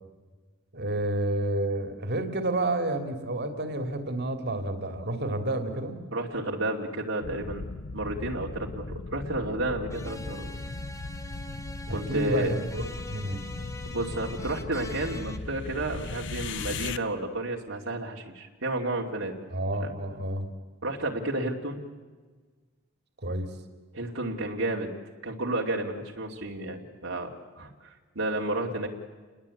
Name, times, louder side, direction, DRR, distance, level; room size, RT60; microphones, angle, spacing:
voice 1, 0.7-5.9 11.9-13.4 19.5-20.5 23.2-23.5, right 1 dB, 55° right, 7 dB, 2.8 m, -30 dB
voice 2, 6.1-7.7 7.9-10.5 11.9-12.5 13.8-19.3 19.8-19.9 20.8-21.8 23.9-24.9 25.2-27.7 28.1-28.9, right 2 dB, 70° right, -1 dB, 2.6 m, -31 dB
sound 1, 7.2-17.0, left 3 dB, 60° left, 0.9 m, -38 dB
sound 2, 9.9-15.4, left 1 dB, 15° left, 1.5 m, -44 dB
29.0 x 21.0 x 8.5 m, 1.4 s
head